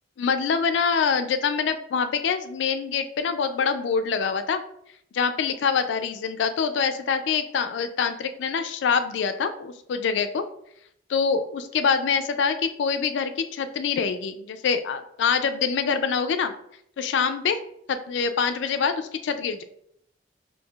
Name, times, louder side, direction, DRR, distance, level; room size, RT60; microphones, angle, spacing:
voice 1, 0.2-4.6 5.1-10.5 11.1-16.5 17.0-17.6 17.9-19.6, left 6 dB, 85° left, 9 dB, 0.3 m, -25 dB
5.4 x 2.7 x 2.3 m, 0.71 s
head